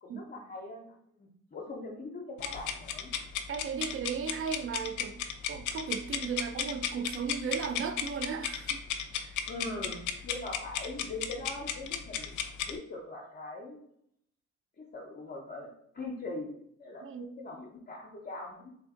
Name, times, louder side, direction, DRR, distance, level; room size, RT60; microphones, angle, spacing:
voice 1, 0.0-3.1 9.5-12.4 12.7-13.8 14.8-15.7 15.9-16.5 16.8-18.7, left 2 dB, 35° left, 0.7 m, -41 dB
sound 1, 2.4-12.8, left 8 dB, 80° left, 0.5 m, -35 dB
voice 2, 3.5-5.2 5.5-8.8 9.2-9.7 17.0-17.3, right 6 dB, 45° right, 0.4 m, -36 dB
3.4 x 2.5 x 3.7 m
cardioid pair, 90°, 30 cm